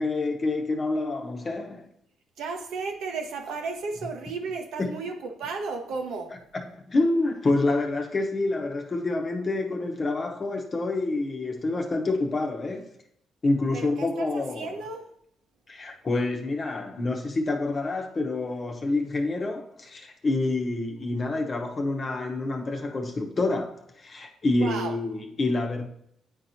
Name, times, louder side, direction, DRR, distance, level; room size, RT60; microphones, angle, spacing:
voice 1, 0.0-1.9 4.8-5.0 6.5-12.9 13.4-14.7 15.7-25.9, left 2 dB, 35° left, 1.0 m, -27 dB
voice 2, 2.4-6.3 13.7-15.1 24.6-25.0, right 4 dB, 85° right, 1.0 m, -34 dB
9.0 x 4.3 x 2.7 m
cardioid pair, 90°, 0 cm